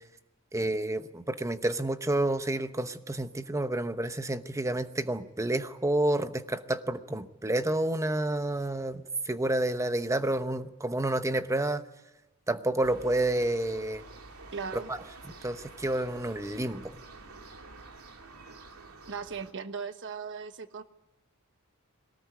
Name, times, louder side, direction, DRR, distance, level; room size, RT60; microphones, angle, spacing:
voice 1, 0.5-11.8 12.5-14.0 14.7-15.0 15.3-16.9, right 1 dB, 15° right, 10 dB, 0.9 m, -29 dB
sound 1, 12.8-19.5, right 3 dB, 85° right, 2.5 m, -49 dB
voice 2, 14.5-14.9 19.1-20.8, right 5 dB, 60° right, 10 dB, 1.2 m, -37 dB
22.0 x 18.5 x 9.5 m, 0.98 s
head